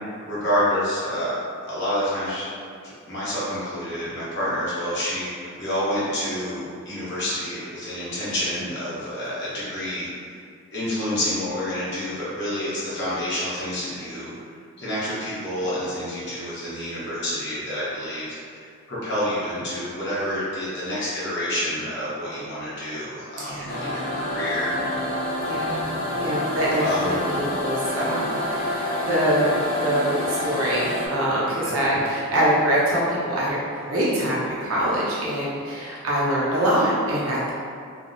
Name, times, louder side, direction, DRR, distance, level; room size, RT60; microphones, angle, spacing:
voice 1, 0.2-2.5 3.1-5.3 5.6-10.1 10.7-14.3 14.8-18.3 18.5-24.7 26.8-27.2, equal, 55° left, -10 dB, 0.8 m, -28 dB
voice 2, 23.4-23.8 25.4-25.8 26.1-37.5, equal, 90° right, -7 dB, 0.7 m, -24 dB
sound 1, 23.7-31.1, left 1 dB, 40° left, 0.4 m, -27 dB
2.4 x 2.0 x 2.5 m, 2.3 s
head